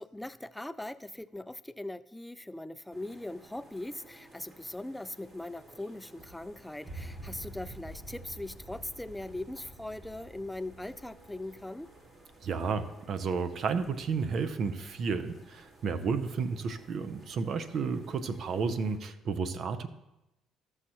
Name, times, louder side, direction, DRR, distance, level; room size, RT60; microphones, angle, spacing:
voice 1, 0.0-11.9, left 1 dB, 10° left, 15 dB, 0.3 m, -40 dB
sound 1, 2.9-19.0, right 2 dB, 40° right, 2.5 m, -57 dB
sound 2, 6.8-13.0, right 1 dB, 15° right, 1.3 m, -47 dB
voice 2, 12.4-19.9, right 5 dB, 60° right, 11 dB, 0.6 m, -32 dB
13.5 x 6.4 x 2.9 m, 0.94 s
supercardioid pair, 65°, 0 cm